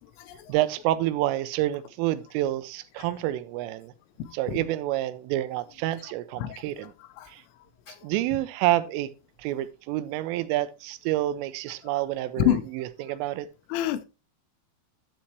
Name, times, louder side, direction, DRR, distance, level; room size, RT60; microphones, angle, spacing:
voice 1, 0.5-3.9 4.3-6.9 7.3-7.4 8.0-9.1 9.4-13.5, right 14 dB, 85° right, 3.2 m, -28 dB
voice 2, 13.7-14.1, left 12 dB, 80° left, 3.3 m, -24 dB
12.5 x 7.2 x 3.0 m
omnidirectional pair, 5.7 m